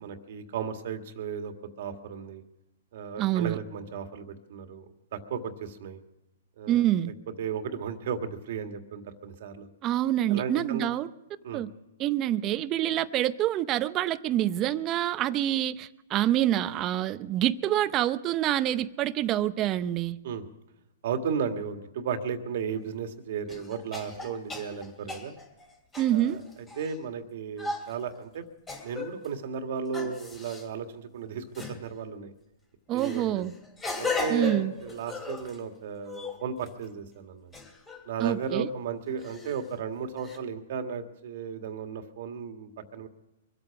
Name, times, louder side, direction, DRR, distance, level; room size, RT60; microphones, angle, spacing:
voice 1, 0.0-2.4 2.9-4.9 5.1-6.0 6.6-7.1 7.4-9.7 10.3-10.9 11.4-11.6 20.2-20.5 21.0-25.3 26.1-26.4 26.8-28.5 28.8-32.3 32.9-33.5 34.0-37.5 38.1-43.1, right 6 dB, 60° right, 7 dB, 1.8 m, -35 dB
voice 2, 3.2-3.6 6.7-7.1 9.8-11.1 11.5-11.7 12.0-20.2 26.0-26.4 32.9-33.5 34.3-34.7 38.2-38.7, right 13 dB, 30° right, 14 dB, 0.7 m, -26 dB
sound 1, 22.7-22.8 23.5-26.9 27.6-28.0 28.7-29.3 29.9-30.6 31.5-31.8 33.0-35.6 36.0-36.8 37.5-38.1 39.2-39.7 40.2-40.4, left 3 dB, 15° left, 3.0 m, -36 dB
24.0 x 8.7 x 5.9 m, 0.92 s
hypercardioid pair, 140°, 0 cm